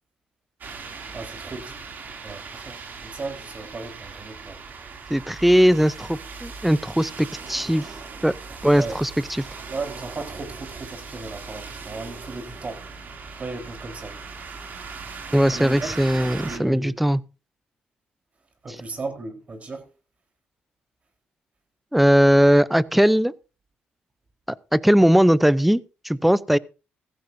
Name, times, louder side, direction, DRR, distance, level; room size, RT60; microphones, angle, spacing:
sound 1, 0.6-16.6, right 4 dB, 55° right, 2.8 m, -39 dB
voice 1, 1.1-1.7 2.2-4.6 8.5-9.0 9.7-12.8 13.4-14.2 15.5-15.9 16.2-17.0 18.6-19.9, right 3 dB, 35° right, 4.2 m, -36 dB
voice 2, 5.1-7.8 8.2-8.3 8.6-9.1 15.3-17.2 21.9-23.3 24.7-26.6, equal, 5° right, 0.6 m, -19 dB
16.0 x 15.0 x 2.7 m
cardioid pair, 80°, 4 cm